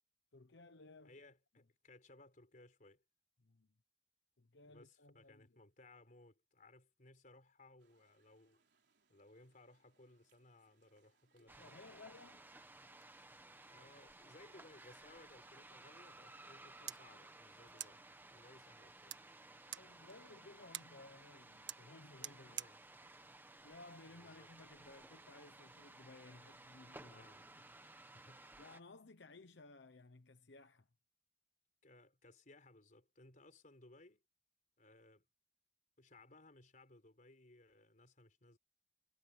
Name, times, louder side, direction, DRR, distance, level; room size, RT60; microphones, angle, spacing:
voice 1, 0.3-1.1 3.4-3.7 4.4-5.6 11.4-12.4 19.6-22.6 23.6-27.3 27.6-28.1 28.6-30.9, left 2 dB, 75° left, 1.0 m, -59 dB
voice 2, 1.0-3.0 4.6-8.6 9.1-11.8 13.7-19.2 22.4-22.8 24.1-24.5 27.1-27.5 28.1-28.5 31.8-34.2 34.8-35.3 36.0-38.6, left 2 dB, 50° left, 4.0 m, -63 dB
sound 1, 7.8-20.8, right 5 dB, 70° right, 4.2 m, -80 dB
sound 2, 11.5-28.8, right 2 dB, 10° right, 1.5 m, -58 dB
sound 3, 16.8-24.5, right 12 dB, 90° right, 1.5 m, -53 dB
head